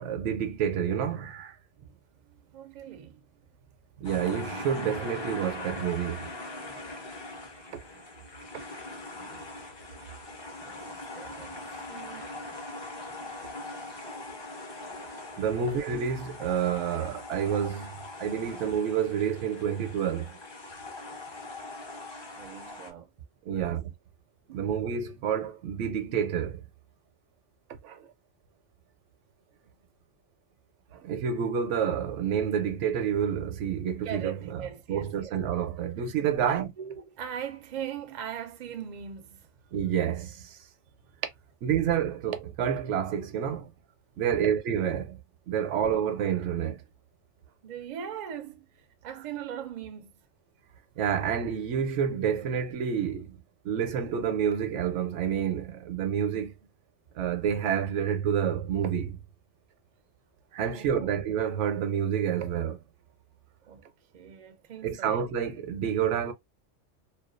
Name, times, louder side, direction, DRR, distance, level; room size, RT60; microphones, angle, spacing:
voice 1, 0.0-1.6 4.0-6.3 15.4-17.9 18.2-20.4 23.5-23.9 24.5-26.6 27.7-28.1 30.9-34.4 34.9-36.7 39.7-40.6 41.6-43.7 44.2-45.2 45.5-46.8 51.0-53.4 53.6-56.5 57.1-59.2 60.5-62.8 64.8-66.3, right 8 dB, 80° right, 0.9 m, -29 dB
voice 2, 2.2-3.3 6.6-6.9 9.3-9.7 10.5-12.4 14.1-14.3 22.4-23.1 23.5-23.8 24.5-24.7 34.0-35.3 36.4-39.5 44.2-44.6 47.6-50.2 60.7-61.2 63.7-63.9 64.1-65.2, right 9 dB, 60° right, 0.4 m, -41 dB
sound 1, 4.0-22.9, left 2 dB, 35° left, 0.4 m, -41 dB
2.3 x 2.2 x 2.4 m
omnidirectional pair, 1.2 m